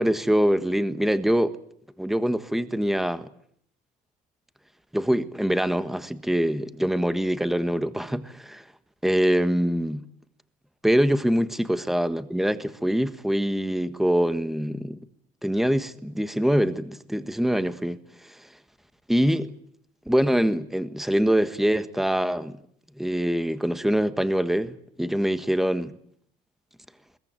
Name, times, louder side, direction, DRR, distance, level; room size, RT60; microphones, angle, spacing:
voice 1, 0.0-1.6 2.0-3.3 4.9-8.6 9.0-10.0 10.8-15.0 15.4-18.4 19.1-19.5 20.1-22.6 23.0-25.9, equal, ahead, 1.5 m, -24 dB
22.0 x 20.0 x 9.2 m
cardioid pair, 110°, 17 cm